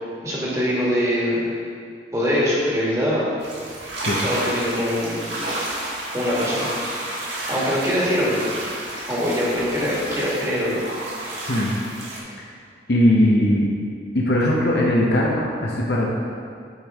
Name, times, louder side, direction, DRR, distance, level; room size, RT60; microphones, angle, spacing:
voice 1, 0.2-1.4 2.1-3.3 4.1-5.3 6.1-6.7 7.5-8.4 9.1-10.8, equal, 15° right, -6 dB, 1.5 m, -23 dB
sound 1, 3.4-12.2, right 1 dB, 75° right, 1.6 m, -31 dB
voice 2, 12.9-13.7 14.1-16.1, left 1 dB, 65° left, -3 dB, 0.8 m, -19 dB
9.1 x 5.2 x 3.5 m, 2.3 s
head